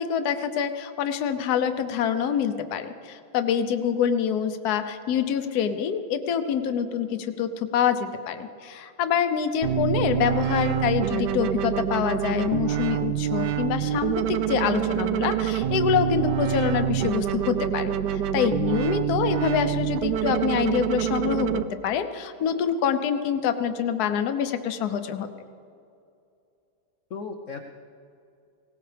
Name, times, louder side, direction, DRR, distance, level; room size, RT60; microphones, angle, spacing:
voice 1, 0.0-25.3, left 8 dB, 60° left, 9 dB, 1.1 m, -26 dB
sound 1, 9.6-21.6, right 11 dB, 75° right, 1.0 m, -26 dB
voice 2, 27.1-27.7, left 4 dB, 85° left, 5 dB, 0.6 m, -37 dB
20.0 x 18.0 x 3.4 m, 2.5 s
omnidirectional pair, 2.3 m